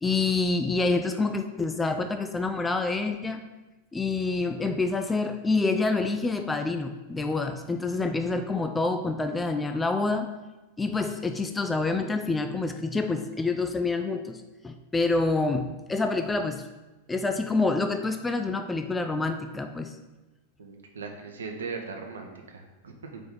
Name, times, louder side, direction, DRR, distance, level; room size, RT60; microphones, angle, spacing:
voice 1, 0.0-3.4 3.9-10.3 10.8-16.6 17.1-20.0, left 3 dB, 10° left, 7 dB, 0.3 m, -27 dB
voice 2, 20.6-23.2, right 4 dB, 65° right, 3 dB, 0.8 m, -39 dB
4.9 x 3.5 x 5.6 m, 1.1 s
figure-of-eight pair, 90°, 0 cm